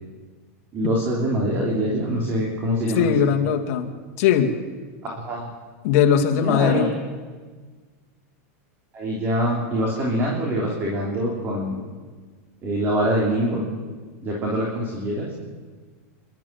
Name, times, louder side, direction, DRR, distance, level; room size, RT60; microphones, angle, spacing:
voice 1, 0.7-3.1 5.0-5.5 6.3-6.9 8.9-11.8 12.6-13.6 14.2-15.3, equal, 25° right, -2 dB, 3.4 m, -24 dB
voice 2, 3.0-3.9 4.2-4.5 5.8-6.9, left 8 dB, 55° left, 4 dB, 2.3 m, -19 dB
28.5 x 12.5 x 7.5 m, 1.4 s
supercardioid pair, 150°, 8 cm